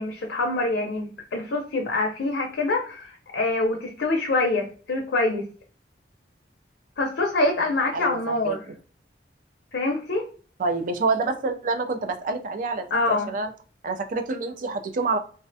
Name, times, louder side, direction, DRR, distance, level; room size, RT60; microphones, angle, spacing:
voice 1, 0.0-5.4 7.0-8.7 9.7-10.3 12.9-13.3, left 2 dB, 70° left, 2 dB, 0.5 m, -25 dB
voice 2, 10.6-13.5 13.8-15.2, right 3 dB, 45° right, 7 dB, 0.4 m, -27 dB
2.4 x 2.1 x 2.6 m, 0.40 s
head